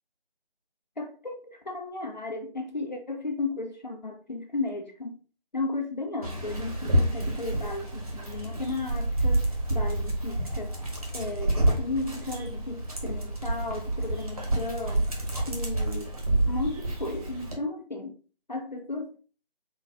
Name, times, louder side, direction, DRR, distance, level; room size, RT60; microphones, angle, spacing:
voice 1, 1.0-5.2 5.5-10.7 11.1-15.1 15.5-16.1 16.5-18.1 18.5-19.2, left 3 dB, 45° left, 0.8 m, -34 dB
Dog, 6.2-17.6, right 1 dB, 35° right, 1.1 m, -29 dB
4.0 x 2.8 x 4.0 m
figure-of-eight pair, 160°, 31 cm